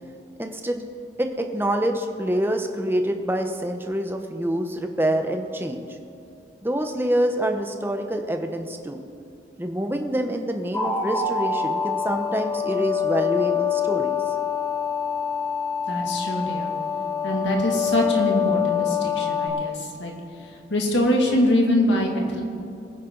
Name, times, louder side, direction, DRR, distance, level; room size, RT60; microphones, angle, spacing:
voice 1, 0.4-0.8 1.2-5.9 6.6-9.0 9.6-14.2, right 1 dB, 10° right, 5 dB, 0.9 m, -26 dB
sound 1, 10.7-19.5, left 7 dB, 15° left, 2.1 m, -25 dB
voice 2, 15.9-16.7 17.2-20.1 20.7-22.4, left 1 dB, 80° left, 0 dB, 2.4 m, -23 dB
23.0 x 10.0 x 3.9 m, 2.6 s
head